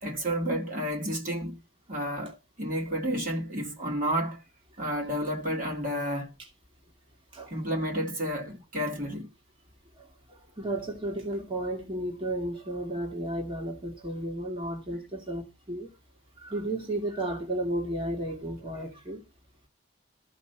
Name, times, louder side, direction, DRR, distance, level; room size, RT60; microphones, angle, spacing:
voice 1, 0.0-1.6 1.9-4.4 4.8-6.3 7.5-9.3 11.4-11.5, equal, 40° right, 2.3 m, -31 dB
voice 2, 10.0-15.9 16.4-19.2, right 1 dB, 25° right, 2.1 m, -33 dB
13.5 x 5.4 x 5.6 m
head